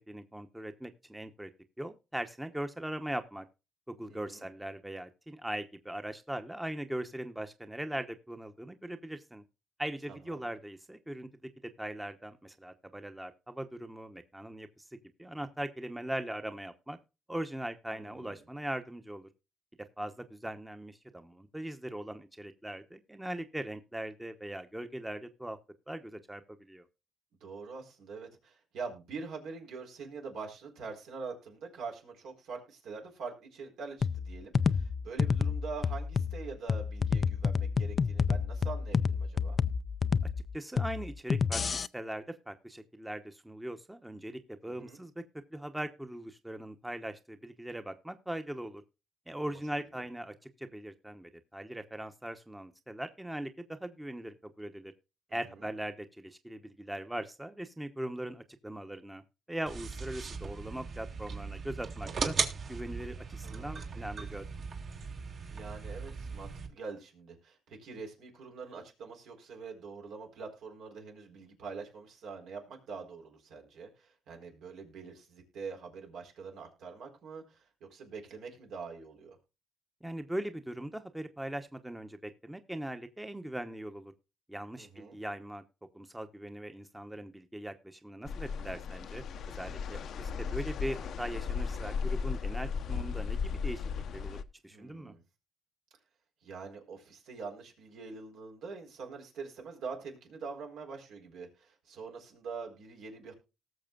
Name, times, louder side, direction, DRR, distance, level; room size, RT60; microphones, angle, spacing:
voice 1, 0.1-1.5 1.8-3.5 3.9-9.4 9.8-11.3 11.8-17.0 17.3-19.3 19.8-25.6 25.9-26.8 40.5-45.2 45.5-48.8 49.3-54.9 55.3-59.2 59.5-62.3 62.7-64.5 80.0-84.1 84.5-85.6 85.9-95.1, right 1 dB, 10° right, 8 dB, 1.0 m, -40 dB
voice 2, 4.1-4.5 10.1-10.4 17.9-18.4 27.4-39.6 44.8-45.0 49.4-49.6 55.3-55.7 63.3-64.0 65.5-79.4 84.8-85.2 94.7-95.2 96.4-103.3, right 4 dB, 80° right, 2 dB, 4.1 m, -44 dB
sound 1, 34.0-41.9, left 5 dB, 40° left, 0.4 m, -30 dB
sound 2, 59.7-66.7, right 5 dB, 55° right, 2.1 m, -38 dB
sound 3, 88.3-94.4, left 6 dB, 70° left, 0.8 m, -36 dB
19.0 x 6.7 x 2.4 m, 0.28 s
cardioid pair, 90°, 0 cm